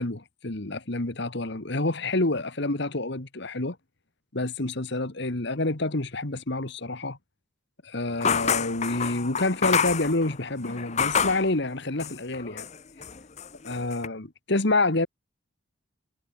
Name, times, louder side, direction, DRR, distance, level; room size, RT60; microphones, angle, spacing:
voice 1, 0.0-3.8 4.3-7.2 7.8-12.7 13.6-15.1, left 2 dB, 55° left, 1.7 m, -28 dB
sound 1, 8.2-11.5 12.0-12.8 13.0-14.1, left 7 dB, 35° left, 0.7 m, -28 dB
head